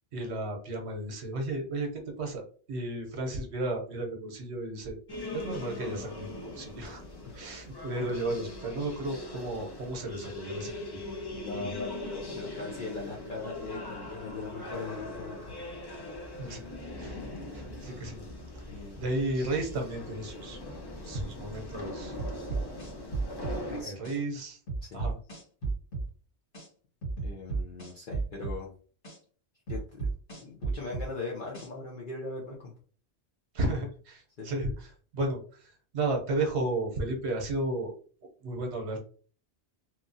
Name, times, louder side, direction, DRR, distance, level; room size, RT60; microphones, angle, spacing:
voice 1, 0.1-2.4 2.7-5.0 5.3-7.0 7.4-10.7 11.5-11.8 16.4-16.6 17.0-17.2 17.5-18.2 19.0-20.6 21.1-22.2 23.8-24.6 24.9-25.2 33.5-37.9 38.4-39.0, right 2 dB, 75° right, 2 dB, 1.0 m, -33 dB
Israel basilica agoniae domini, 5.1-23.8, left 1 dB, 35° left, 0.4 m, -41 dB
voice 2, 11.3-15.6 16.5-16.7 18.7-19.0 23.6-23.9 24.9-25.1 27.2-28.7 29.7-32.7 34.4-34.5, left 3 dB, 55° left, -3 dB, 0.7 m, -40 dB
sound 1, 22.2-23.6 24.0-24.2 24.7-26.1 26.5-26.7 27.0-28.6 29.0-29.2 29.7-31.1 31.5-31.7, right 4 dB, 90° left, 1.8 m, -33 dB
3.0 x 2.3 x 2.6 m, 0.41 s
omnidirectional pair, 1.2 m